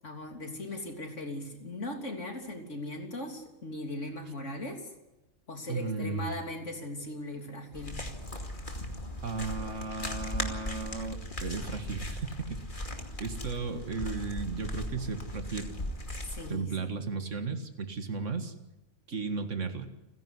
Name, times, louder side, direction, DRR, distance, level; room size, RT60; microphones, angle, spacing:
voice 1, 0.0-4.9 5.5-8.0 16.3-16.9, left 1 dB, 75° left, 4 dB, 3.5 m, -39 dB
voice 2, 5.7-6.3 9.2-12.3 12.8-12.9 13.2-15.7 16.5-18.5 19.1-19.9, right 4 dB, 75° right, 8 dB, 2.2 m, -35 dB
sound 1, 7.7-16.5, left 1 dB, 40° left, 2.7 m, -38 dB
29.5 x 11.0 x 9.8 m, 1.0 s
omnidirectional pair, 1.3 m